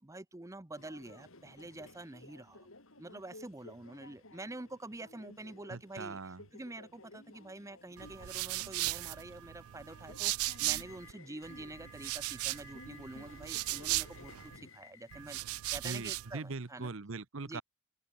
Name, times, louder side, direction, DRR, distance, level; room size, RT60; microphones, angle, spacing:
voice 1, 0.0-2.7 3.0-16.9 17.4-17.6, right 2 dB, 15° right, 0.7 m, -47 dB
Subway metro underground, 0.8-16.7, left 3 dB, 70° left, 4.0 m, -56 dB
voice 2, 5.7-6.4 15.8-17.6, right 3 dB, 65° right, 0.9 m, -41 dB
sound 1, 8.0-11.1 11.4-14.6 15.1-16.3, right 18 dB, 85° right, 0.4 m, -37 dB
open air
head